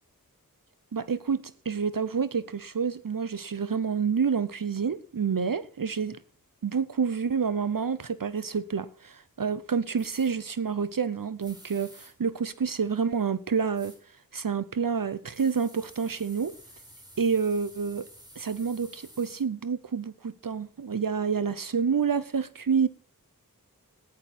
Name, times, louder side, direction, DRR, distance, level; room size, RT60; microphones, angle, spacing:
voice 1, 0.9-6.2 6.6-13.9 14.3-16.6 17.2-18.1 18.4-22.9, right 6 dB, 65° right, 0.7 m, -28 dB
sound 1, 10.0-10.3 11.4-12.1 13.7-14.0 15.3-19.4, equal, 10° right, 6.7 m, -51 dB
14.0 x 10.0 x 4.3 m
wide cardioid pair, 45°, 35 cm